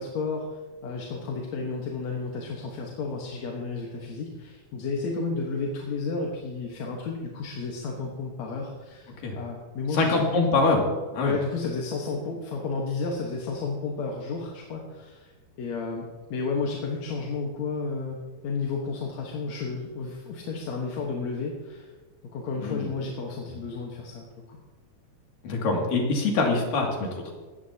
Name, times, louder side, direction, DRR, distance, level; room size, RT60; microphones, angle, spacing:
voice 1, 0.0-10.2 11.2-15.3 15.6-16.1 16.3-21.9 22.3-24.6, left 4 dB, 60° left, -1 dB, 2.5 m, -32 dB
voice 2, 9.9-10.9 11.1-11.3 22.6-22.9 25.4-27.3, left 3 dB, 90° left, 0 dB, 4.2 m, -24 dB
18.0 x 14.5 x 2.9 m, 1.3 s
omnidirectional pair, 3.8 m